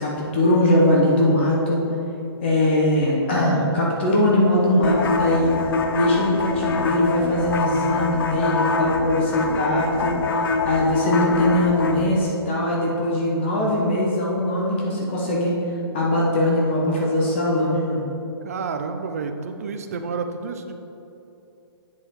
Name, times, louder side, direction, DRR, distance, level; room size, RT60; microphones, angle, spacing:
voice 1, 0.0-1.8 2.4-5.6 5.9-10.2 10.6-15.6 15.9-18.1, left 1 dB, 25° left, -3 dB, 1.0 m, -21 dB
sound 1, 4.8-12.0, left 3 dB, 55° left, 0.7 m, -24 dB
voice 2, 18.4-20.7, right 4 dB, 35° right, 7 dB, 0.5 m, -30 dB
8.0 x 7.0 x 3.7 m, 2.8 s
hypercardioid pair, 180°, 14 cm